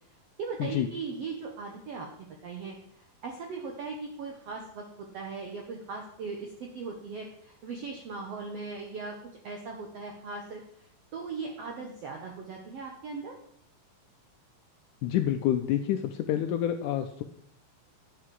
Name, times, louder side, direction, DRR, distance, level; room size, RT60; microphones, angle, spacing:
voice 1, 0.4-2.7 3.2-4.8 5.1-9.1 9.4-10.6 11.1-13.3, right 4 dB, 75° right, 2 dB, 1.4 m, -38 dB
voice 2, 15.0-17.2, left 11 dB, 85° left, 7 dB, 1.8 m, -28 dB
9.2 x 7.6 x 4.7 m, 0.72 s
omnidirectional pair, 4.1 m